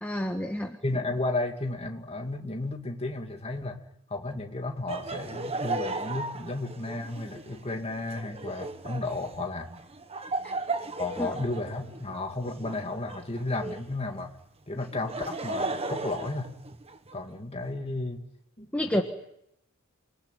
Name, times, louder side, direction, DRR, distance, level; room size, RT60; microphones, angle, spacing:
voice 1, 0.0-0.8 10.4-10.5 11.2-11.4 18.7-19.0, equal, 5° left, 3 dB, 1.5 m, -29 dB
voice 2, 0.8-3.8 4.1-9.7 11.0-14.3 14.7-16.5 17.1-18.2 18.6-19.0, left 2 dB, 25° left, 3 dB, 2.4 m, -33 dB
Laughter, 4.9-13.9 14.8-17.2, right 3 dB, 25° right, 1.4 m, -36 dB
28.5 x 20.0 x 9.2 m, 0.78 s
head